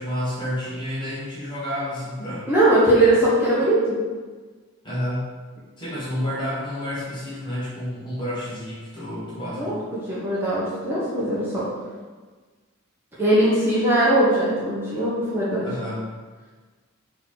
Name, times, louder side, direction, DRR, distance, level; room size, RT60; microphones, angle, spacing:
voice 1, 0.0-2.5 4.8-5.3 5.8-9.9 15.6-16.0, equal, 20° left, -8 dB, 1.1 m, -30 dB
voice 2, 2.5-4.0 9.5-11.7 13.2-15.7, right 1 dB, 10° right, -9 dB, 1.1 m, -20 dB
4.1 x 3.0 x 4.2 m, 1.4 s
head